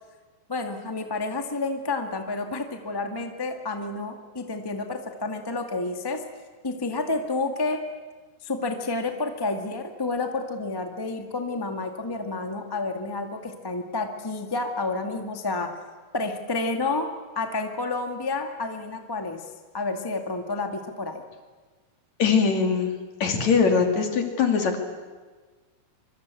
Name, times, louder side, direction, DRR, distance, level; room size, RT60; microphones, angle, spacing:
voice 1, 0.5-6.2 6.6-7.8 8.4-15.7 16.1-17.1 17.3-19.4 19.7-21.2, left 3 dB, 15° left, 5 dB, 1.0 m, -30 dB
voice 2, 22.2-22.9 23.2-24.8, left 5 dB, 50° left, 4 dB, 3.7 m, -21 dB
25.5 x 25.0 x 8.4 m, 1.4 s
omnidirectional pair, 4.2 m